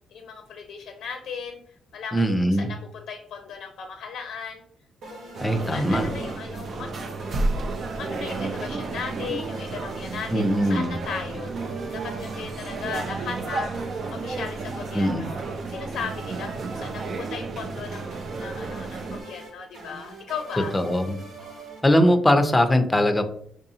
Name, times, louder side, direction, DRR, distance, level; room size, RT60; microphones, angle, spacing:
voice 1, 0.1-4.6 5.1-7.4 7.9-13.8 14.1-15.4 15.7-20.7, left 6 dB, 80° left, 5 dB, 0.5 m, -37 dB
voice 2, 2.1-2.7 5.4-6.1 10.3-10.9 14.9-15.3 20.7-21.2 21.8-23.2, equal, 15° left, 7 dB, 0.5 m, -21 dB
sound 1, 5.0-22.5, right 3 dB, 75° right, 1.2 m, -43 dB
sound 2, 5.3-19.2, right 3 dB, 50° right, 0.5 m, -32 dB
4.7 x 2.6 x 2.7 m, 0.63 s
cardioid pair, 90°, 0 cm